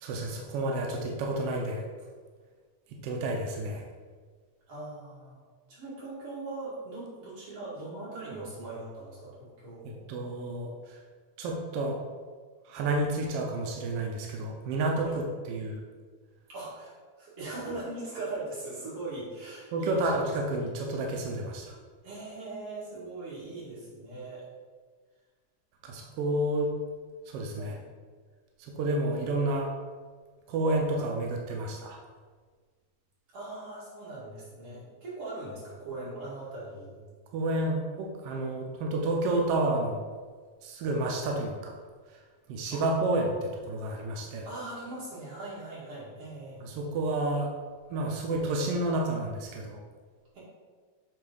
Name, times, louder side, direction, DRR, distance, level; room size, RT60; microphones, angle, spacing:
voice 1, 0.0-1.8 3.0-3.8 10.1-11.0 11.4-12.0 12.6-15.8 17.7-17.8 19.7-21.8 25.8-26.7 27.3-27.8 28.6-29.7 30.5-32.0 37.3-40.0 40.6-41.7 42.5-44.5 46.6-47.5 47.9-49.8, right 2 dB, 75° right, 0 dB, 1.4 m, -30 dB
voice 2, 4.7-5.4 5.7-10.1 15.0-15.2 16.5-20.3 22.0-24.5 27.6-27.8 33.3-37.0 41.1-41.3 42.7-42.8 44.4-46.6 50.3-50.4, right 2 dB, 55° right, -8 dB, 3.1 m, -40 dB
7.0 x 3.3 x 5.2 m, 1.6 s
omnidirectional pair, 3.4 m